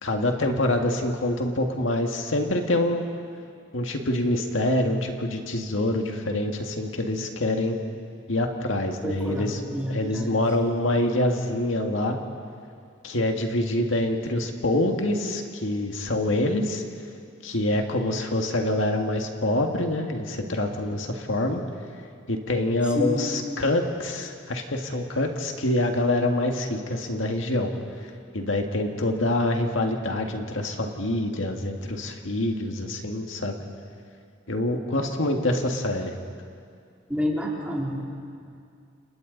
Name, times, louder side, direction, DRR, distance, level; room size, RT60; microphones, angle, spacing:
voice 1, 0.0-3.1 3.7-7.8 8.3-9.6 9.9-12.2 13.0-16.8 17.4-21.6 22.3-27.7 28.3-33.6 34.5-36.1, left 1 dB, 90° left, 3 dB, 1.9 m, -26 dB
voice 2, 9.0-10.4 22.9-23.2 35.4-35.6 37.1-38.0, equal, 5° right, -4 dB, 3.4 m, -29 dB
30.0 x 28.0 x 4.0 m, 2.3 s
head